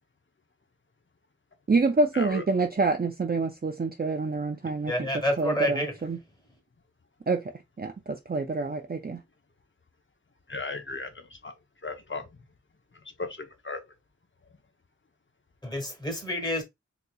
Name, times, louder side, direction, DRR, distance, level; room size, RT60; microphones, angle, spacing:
voice 1, 1.7-5.1 5.4-6.2 7.3-7.4 7.8-9.2, right 3 dB, 35° right, 0.5 m, -27 dB
voice 2, 4.9-5.9 15.6-16.6, equal, 15° left, 1.3 m, -28 dB
voice 3, 10.5-11.5 11.8-12.3 13.2-13.8, left 3 dB, 40° left, 0.8 m, -36 dB
3.9 x 2.8 x 2.3 m
wide cardioid pair, 55°, 29 cm